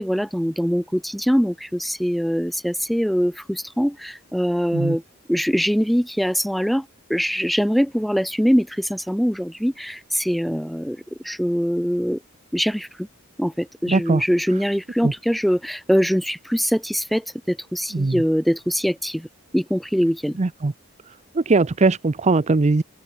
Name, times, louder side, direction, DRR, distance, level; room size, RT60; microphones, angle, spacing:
voice 1, 0.0-5.0 5.3-6.8 7.1-11.0 11.2-12.2 12.5-13.1 13.4-19.3 19.5-20.4, equal, ahead, 1.6 m, -23 dB
voice 2, 13.9-14.2 15.0-15.1 17.9-18.2 20.4-20.7 21.3-22.8, right 3 dB, 35° right, 0.6 m, -20 dB
open air
head